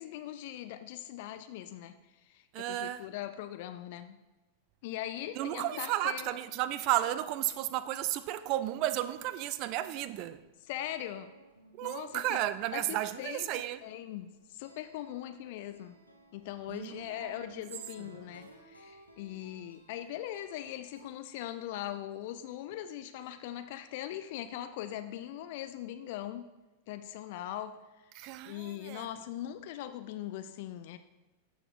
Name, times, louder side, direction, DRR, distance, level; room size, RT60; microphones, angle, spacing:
voice 1, 0.0-1.9 2.2-4.2 4.8-6.3 10.7-11.3 11.8-12.4 12.7-16.0 16.3-26.4 26.9-27.8 28.5-31.0, left 12 dB, 50° left, 0.3 m, -40 dB
voice 2, 2.5-3.1 5.3-10.4 11.7-13.8 16.7-17.4 18.0-18.1 28.1-29.1, right 14 dB, 40° right, 0.3 m, -33 dB
sound 1, 11.1-21.0, right 1 dB, 85° left, 0.8 m, -58 dB
12.5 x 4.2 x 2.4 m
figure-of-eight pair, 90°, 0 cm